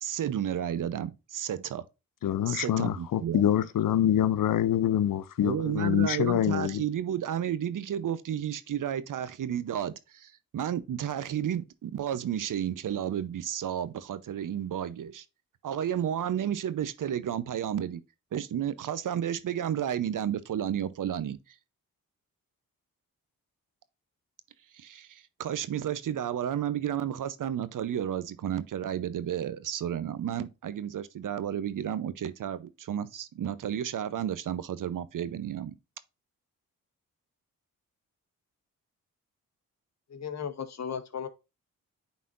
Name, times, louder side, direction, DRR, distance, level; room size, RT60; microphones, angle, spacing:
voice 1, 0.0-1.8 2.5-3.4 5.4-15.2 15.6-18.0 18.3-21.4 24.7-35.7, right 9 dB, 60° right, 0.8 m, -32 dB
voice 2, 2.2-6.8, left 11 dB, 65° left, 0.7 m, -25 dB
voice 3, 40.1-41.3, left 7 dB, 50° left, 1.3 m, -35 dB
9.4 x 4.2 x 2.5 m
cardioid pair, 65°, 35 cm